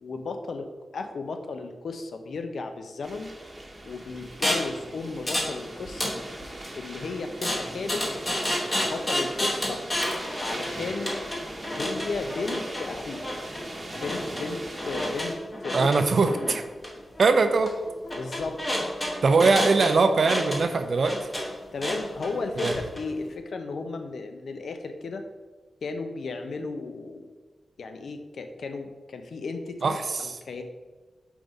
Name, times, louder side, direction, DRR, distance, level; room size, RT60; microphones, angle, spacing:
voice 1, 0.0-3.3 3.8-6.2 6.7-8.1 8.8-9.8 10.4-11.2 11.7-13.2 14.0-15.4 15.6-16.6 18.2-18.6 19.6-19.7 21.7-25.3 25.8-27.3 27.8-30.0 30.2-30.6, left 3 dB, 80° left, 6 dB, 0.6 m, -34 dB
sound 1, 3.0-15.3, right 1 dB, 20° right, 1.0 m, -40 dB
sound 2, 4.4-4.7 5.3-5.6 5.8-6.7 7.4-23.0, left 1 dB, 25° left, 1.1 m, -30 dB
voice 2, 15.7-16.6 17.2-17.7 19.2-21.2 22.6-22.7 29.8-30.3, right 4 dB, 60° right, 8 dB, 0.5 m, -21 dB
4.5 x 3.9 x 5.2 m, 1.3 s
wide cardioid pair, 115°, 0 cm